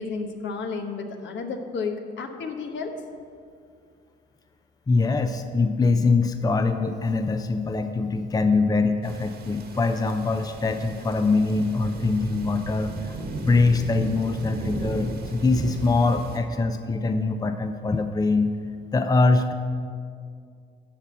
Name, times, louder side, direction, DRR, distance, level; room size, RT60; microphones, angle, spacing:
voice 1, 0.0-2.9, left 4 dB, 70° left, 4 dB, 1.3 m, -32 dB
voice 2, 4.9-18.5 18.9-19.5, left 3 dB, 20° left, 8 dB, 0.6 m, -23 dB
sound 1, 9.0-16.4, right 2 dB, 55° right, 1.5 m, -36 dB
13.0 x 4.4 x 8.2 m, 2.2 s
cardioid pair, 90°, 20 cm